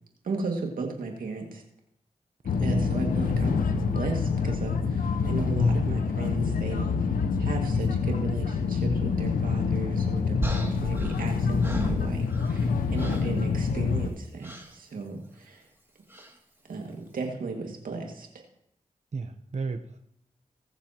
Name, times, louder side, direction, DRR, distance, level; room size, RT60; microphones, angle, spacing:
voice 1, 0.2-1.6 2.6-15.6 16.7-18.3, right 3 dB, 90° right, 2 dB, 2.1 m, -35 dB
sound 1, 2.5-14.1, left 5 dB, 90° left, 0.7 m, -26 dB
sound 2, 10.4-12.7 13.0-13.4 14.4-14.7 16.1-16.4, right 1 dB, 15° right, 2.5 m, -35 dB
voice 2, 19.1-20.0, right 4 dB, 55° right, 6 dB, 0.9 m, -33 dB
20.5 x 7.2 x 3.0 m, 0.74 s
cardioid pair, 45°, 14 cm